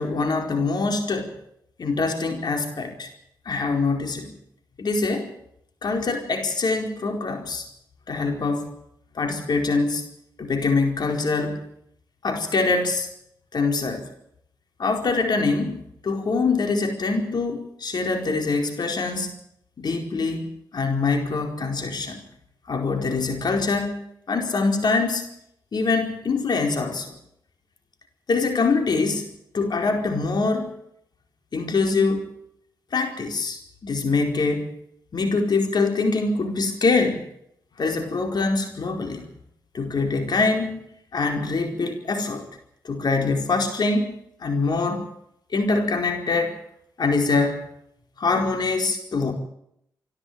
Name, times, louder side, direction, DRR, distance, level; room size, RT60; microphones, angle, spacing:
voice 1, 0.0-1.4 1.8-3.1 3.4-4.3 4.8-5.3 5.8-7.6 8.1-8.7 9.1-10.0 10.4-11.6 12.2-13.1 13.5-14.0 14.8-19.3 19.8-20.4 20.7-22.2 22.7-24.0 24.3-25.3 25.7-27.2 28.3-29.3 29.5-30.7 31.5-32.3 32.9-34.7 35.1-37.3 37.8-39.3 39.7-40.8 41.1-42.5 42.8-45.1 45.5-46.6 47.0-47.7 48.2-49.3, left 3 dB, 60° left, 4 dB, 4.6 m, -24 dB
27.0 x 12.0 x 8.9 m, 0.75 s
supercardioid pair, 45°, 8 cm